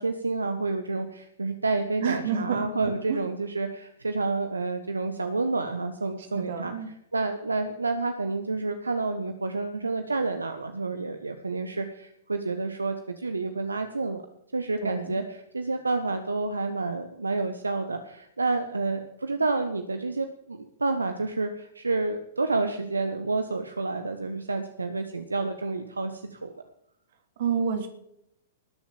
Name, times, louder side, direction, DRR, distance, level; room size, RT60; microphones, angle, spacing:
voice 1, 0.0-6.7 7.1-14.2 14.5-26.5, right 3 dB, 80° right, 7 dB, 1.2 m, -29 dB
voice 2, 2.0-3.2 6.3-6.9 14.8-15.2 27.4-27.9, right 7 dB, 55° right, 7 dB, 2.8 m, -29 dB
19.5 x 7.3 x 7.0 m, 0.76 s
figure-of-eight pair, 100°, 0 cm